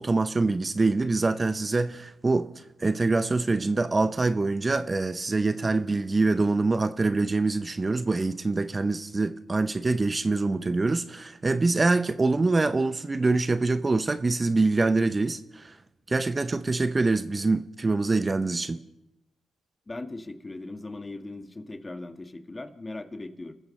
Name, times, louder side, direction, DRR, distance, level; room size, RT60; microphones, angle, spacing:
voice 1, 0.0-2.5 2.8-15.8 16.1-18.8, right 3 dB, 30° right, 0.7 m, -25 dB
voice 2, 19.9-23.5, left 2 dB, 25° left, 1.7 m, -39 dB
29.5 x 14.5 x 3.3 m
supercardioid pair, 55°, 0 cm